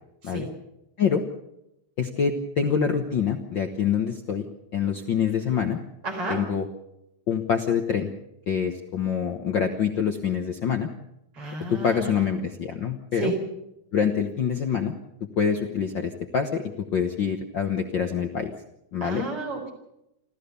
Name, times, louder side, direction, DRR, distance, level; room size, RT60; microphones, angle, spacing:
voice 1, 2.0-4.4 4.7-5.8 6.3-6.7 7.3-8.1 8.5-10.9 11.7-13.3 13.9-14.9 15.2-16.6 16.9-18.5 18.9-19.3, left 7 dB, 55° left, 6 dB, 1.5 m, -25 dB
voice 2, 6.0-6.5 11.4-12.3 13.2-13.4 19.0-19.7, right 3 dB, 50° right, 3 dB, 5.5 m, -32 dB
27.5 x 14.0 x 6.9 m, 0.85 s
omnidirectional pair, 3.3 m